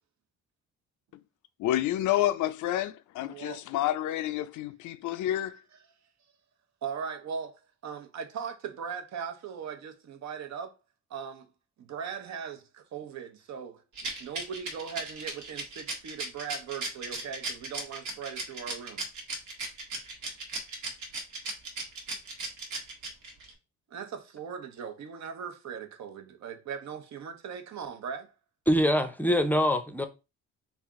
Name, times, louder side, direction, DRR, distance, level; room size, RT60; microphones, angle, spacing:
voice 1, 1.6-5.6, left 13 dB, 75° left, 0.4 m, -29 dB
voice 2, 3.2-3.6 6.8-7.5 7.8-10.7 11.1-11.4 11.9-12.6 12.9-13.7 14.2-19.0 23.9-28.2, right 7 dB, 65° right, 0.8 m, -39 dB
Rattle, 14.0-23.5, right 3 dB, 80° right, 1.3 m, -36 dB
voice 3, 28.7-30.1, equal, 5° left, 0.5 m, -24 dB
3.3 x 2.5 x 3.5 m
cardioid pair, 90°, 30 cm